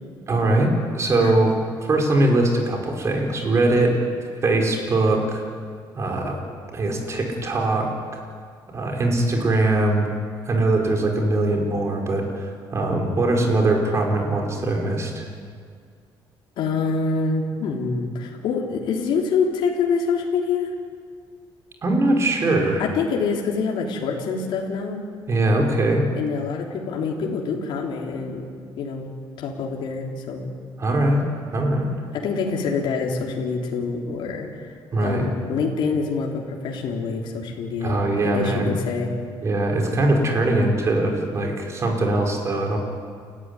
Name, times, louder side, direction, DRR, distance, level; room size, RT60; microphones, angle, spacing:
voice 1, 0.3-4.0 4.4-5.4 5.9-6.4 6.7-7.9 8.7-10.1 10.5-15.3 21.8-22.8 25.3-26.0 30.8-31.2 31.5-31.9 34.9-35.3 37.8-38.7 39.4-42.8, right 2 dB, 35° right, 1 dB, 5.3 m, -21 dB
voice 2, 16.6-20.7 22.8-25.1 26.2-28.5 28.8-29.1 29.4-30.6 32.1-39.1, left 5 dB, 70° left, -1 dB, 3.6 m, -26 dB
29.5 x 14.5 x 9.9 m, 2.1 s
cardioid pair, 130°, 9 cm